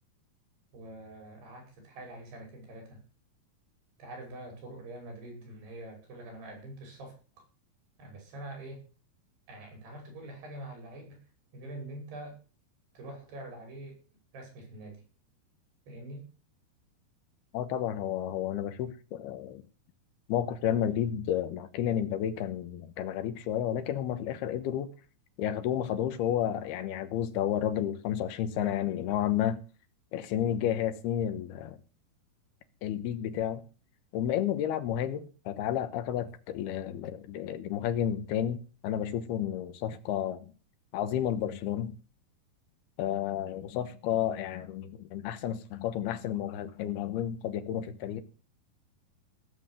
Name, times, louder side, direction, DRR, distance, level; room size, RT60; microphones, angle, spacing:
voice 1, 0.7-3.0 4.0-7.4 8.0-8.8 9.5-11.2 11.5-12.4 12.9-14.0 14.3-15.0 15.9-16.3, right 1 dB, 90° right, 8.0 m, -45 dB
voice 2, 17.5-19.6 20.3-24.9 25.4-29.6 30.1-31.8 32.8-33.6 34.1-40.5 40.9-42.0 43.0-48.2, left 10 dB, 80° left, 3.1 m, -31 dB
16.5 x 7.6 x 6.6 m
omnidirectional pair, 4.6 m